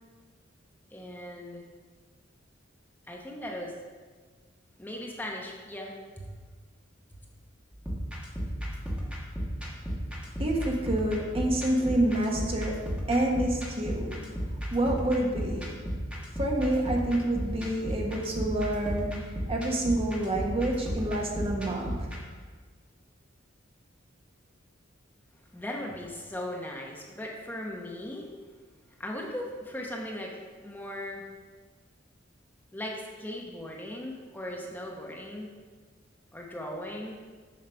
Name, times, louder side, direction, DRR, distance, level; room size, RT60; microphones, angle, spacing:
voice 1, 0.9-1.6 3.1-3.8 4.8-6.3 25.5-28.3 29.0-31.3 32.7-35.5 36.3-37.2, left 1 dB, 10° left, -1 dB, 0.9 m, -38 dB
sound 1, 7.7-22.2, equal, 5° right, 1.5 m, -34 dB
voice 2, 10.4-14.2 14.7-15.8 16.4-22.1, right 1 dB, 30° right, 0 dB, 1.2 m, -28 dB
7.6 x 5.6 x 5.6 m, 1.5 s
head